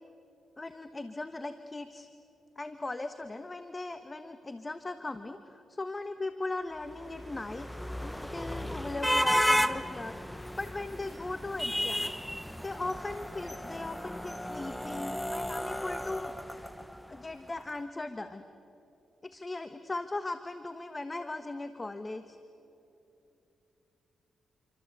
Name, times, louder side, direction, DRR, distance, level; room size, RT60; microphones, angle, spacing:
voice 1, 0.6-2.1 2.6-10.2 10.6-16.7 17.1-18.4 19.2-22.4, left 2 dB, 25° left, 9 dB, 1.3 m, -39 dB
sound 1, 6.9-17.2, equal, 5° left, 1.1 m, -33 dB
28.5 x 25.0 x 8.1 m, 2.9 s
cardioid pair, 80°, 0 cm